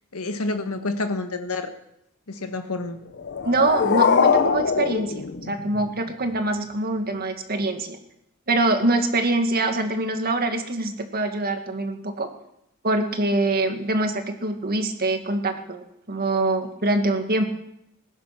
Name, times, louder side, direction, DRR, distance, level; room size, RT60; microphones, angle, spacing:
voice 1, 0.1-1.7 2.3-3.0, left 2 dB, 85° left, 7 dB, 1.5 m, -28 dB
sound 1, 3.1-6.1, left 5 dB, 50° left, 0.7 m, -22 dB
voice 2, 3.4-8.0 8.5-12.3 12.8-17.4, right 2 dB, 45° right, 5 dB, 1.9 m, -24 dB
20.5 x 10.5 x 6.0 m, 0.81 s
head